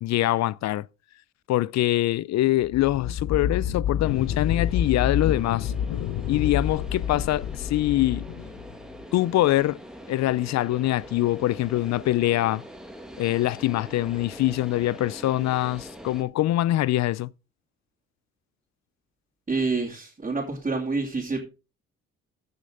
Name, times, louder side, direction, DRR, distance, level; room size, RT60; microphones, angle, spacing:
voice 1, 0.0-0.9 1.5-5.7 6.3-8.3 9.1-9.8 10.1-12.6 13.2-17.3, left 15 dB, 65° left, 0.4 m, -24 dB
sound 1, 2.6-9.0, left 8 dB, 90° left, 0.9 m, -29 dB
sound 2, 4.0-16.2, equal, ahead, 1.9 m, -44 dB
voice 2, 19.5-21.4, right 3 dB, 25° right, 3.0 m, -27 dB
15.5 x 6.5 x 3.8 m
cardioid pair, 90°, 30 cm